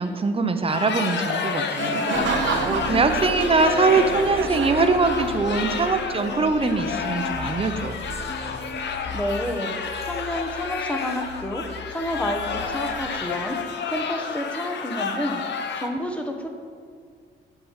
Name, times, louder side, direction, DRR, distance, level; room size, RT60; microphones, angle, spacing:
voice 1, 0.0-2.0 2.4-8.0, right 3 dB, 30° right, 8 dB, 0.9 m, -22 dB
sound 1, 0.7-15.9, left 5 dB, 65° left, 1.0 m, -30 dB
Laughter, 1.7-5.7, right 5 dB, 70° right, 1.0 m, -29 dB
sound 2, 2.1-13.7, left 1 dB, 30° left, 0.9 m, -36 dB
voice 2, 9.1-15.4 15.7-16.5, equal, 5° left, 4 dB, 1.2 m, -30 dB
10.5 x 4.8 x 7.4 m, 2.1 s
cardioid pair, 90°, 20 cm